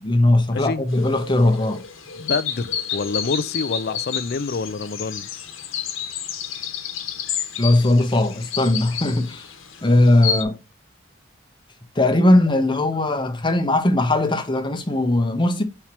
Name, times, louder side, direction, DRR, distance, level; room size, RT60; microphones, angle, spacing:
voice 1, 0.0-1.8 7.6-9.5 9.8-10.6 11.9-15.6, left 1 dB, 25° left, 1.0 m, -19 dB
voice 2, 0.5-0.8 2.2-5.3, left 4 dB, 50° left, 0.5 m, -27 dB
sound 1, 0.9-10.4, left 8 dB, 70° left, 1.2 m, -30 dB
5.8 x 4.5 x 4.5 m
head